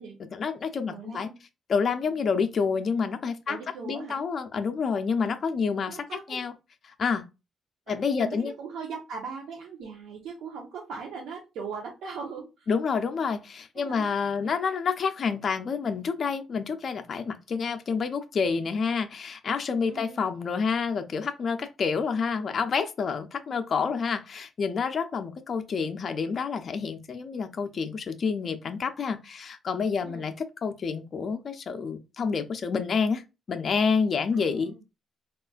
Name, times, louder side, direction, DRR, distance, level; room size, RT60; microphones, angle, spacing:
voice 1, 0.3-1.3 1.7-3.6 3.9-6.5 7.0-7.2 7.9-8.5 12.7-30.3 30.6-34.8, left 5 dB, 50° left, 0.5 m, -28 dB
voice 2, 0.9-1.4 3.5-4.2 5.9-6.4 7.9-12.7 13.8-14.1 19.9-20.4 30.0-30.4 34.3-34.8, right 5 dB, 80° right, 0.8 m, -40 dB
3.6 x 2.4 x 2.3 m
cardioid pair, 90°, 0 cm